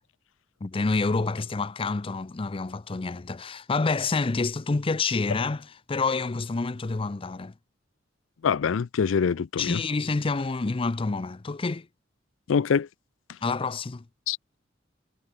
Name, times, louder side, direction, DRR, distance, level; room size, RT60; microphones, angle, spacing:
voice 1, 0.6-7.5 9.6-11.9 13.4-14.0, left 3 dB, 30° left, 0.5 m, -28 dB
voice 2, 8.4-9.8 12.5-12.9 14.3-14.4, left 6 dB, 85° left, 0.4 m, -24 dB
head